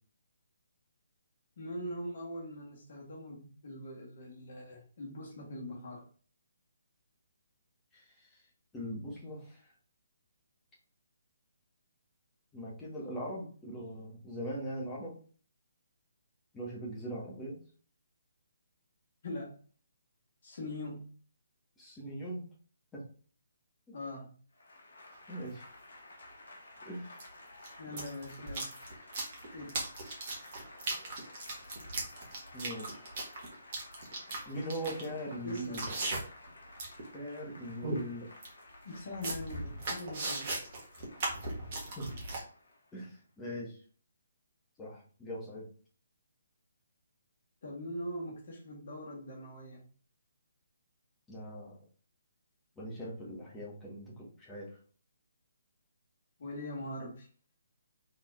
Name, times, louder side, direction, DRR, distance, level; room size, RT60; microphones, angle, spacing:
voice 1, 1.6-6.0 19.2-19.5 20.4-21.1 23.9-24.3 27.8-28.7 29.5-29.8 35.4-35.9 38.8-40.5 47.6-49.8 56.4-57.3, left 1 dB, 45° left, -2 dB, 1.6 m, -42 dB
voice 2, 8.7-9.6 12.5-15.1 16.5-17.6 21.8-22.4 22.9-23.0 23.9-24.0 25.3-25.6 26.9-27.2 32.5-33.0 34.5-35.9 37.1-38.3 41.9-42.1 42.9-43.8 44.8-45.7 51.3-51.8 52.8-54.7, equal, 10° left, -5 dB, 1.6 m, -40 dB
Applause / Crowd, 24.5-43.1, left 2 dB, 60° left, 1.4 m, -54 dB
sound 1, 25.1-25.2 27.2-27.3 27.6-36.5 36.8-37.0 37.4-37.5 37.8-38.0 38.4-38.5 38.9-42.4, right 2 dB, 35° right, 1.4 m, -38 dB
4.1 x 3.8 x 2.7 m, 0.42 s
figure-of-eight pair, 140°, 0 cm